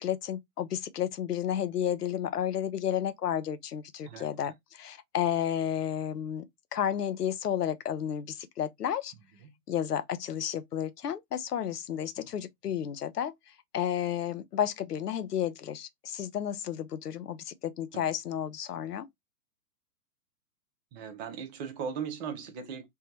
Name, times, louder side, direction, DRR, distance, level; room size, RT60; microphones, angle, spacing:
voice 1, 0.0-6.5 6.7-9.1 9.7-13.3 13.7-19.1, left 9 dB, 85° left, 0.7 m, -32 dB
voice 2, 4.1-4.5 20.9-22.9, right 6 dB, 30° right, 0.6 m, -38 dB
3.3 x 2.1 x 2.9 m
hypercardioid pair, 120°, 46 cm